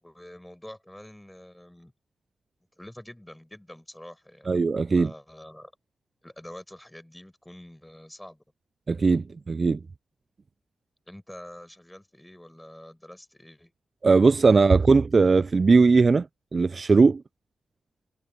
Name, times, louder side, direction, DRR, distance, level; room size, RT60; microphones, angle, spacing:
voice 1, 0.0-1.9 2.8-4.5 5.0-5.7 6.2-8.4 11.1-13.7 14.6-15.1, left 1 dB, 10° left, 5.0 m, -46 dB
voice 2, 4.5-5.1 8.9-9.8 14.0-16.3 16.5-17.2, right 4 dB, 40° right, 0.3 m, -19 dB
cardioid pair, 75°, 0 cm